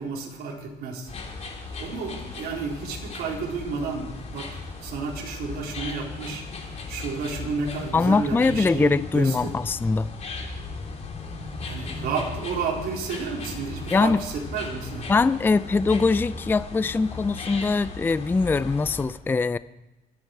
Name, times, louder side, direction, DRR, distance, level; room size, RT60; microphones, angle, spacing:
voice 1, 0.0-9.6 11.6-15.1, right 4 dB, 65° right, -1 dB, 4.1 m, -32 dB
sound 1, 1.1-19.0, left 3 dB, 40° left, 3.4 m, -37 dB
voice 2, 7.9-10.1 13.9-14.2 15.1-19.6, left 4 dB, 10° left, 16 dB, 0.4 m, -22 dB
23.0 x 9.6 x 4.7 m, 0.98 s
cardioid pair, 110°, 17 cm